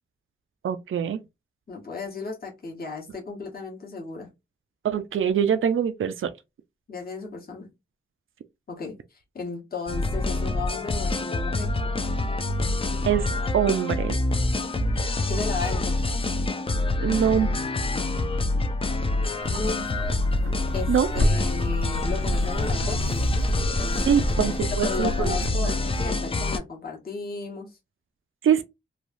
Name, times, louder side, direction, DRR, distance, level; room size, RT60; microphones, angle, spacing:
voice 1, 0.6-1.2 4.8-6.3 13.1-13.2 13.5-14.2 17.0-17.6 20.9-21.1 24.0-25.4 25.6-25.7 28.4-28.6, right 8 dB, 75° right, 0.4 m, -23 dB
voice 2, 1.7-4.3 6.9-7.7 8.7-11.7 15.3-16.2 19.5-19.8 20.7-27.8, left 4 dB, 45° left, 1.1 m, -35 dB
sound 1, 9.9-26.6, left 2 dB, 25° left, 0.4 m, -26 dB
sound 2, 19.4-25.5, right 1 dB, 90° right, 1.1 m, -30 dB
3.1 x 2.3 x 2.5 m
wide cardioid pair, 135°, 21 cm